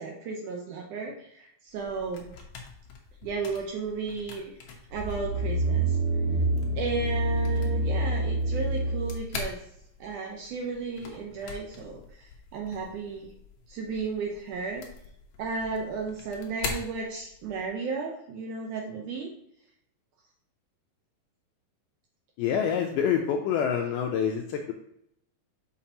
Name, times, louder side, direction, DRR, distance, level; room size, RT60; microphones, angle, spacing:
voice 1, 0.0-2.3 3.2-4.5 4.9-6.0 6.7-9.6 10.0-13.3 13.7-14.8 15.4-19.3, right 4 dB, 75° right, 0 dB, 1.9 m, -34 dB
sound 1, 1.7-17.7, left 4 dB, 65° left, 1.9 m, -44 dB
sound 2, 4.9-9.3 9.8-9.9, right 2 dB, 45° right, 1.5 m, -27 dB
voice 2, 22.4-24.7, left 8 dB, 85° left, 3 dB, 1.9 m, -26 dB
7.1 x 5.3 x 2.8 m, 0.75 s
omnidirectional pair, 4.3 m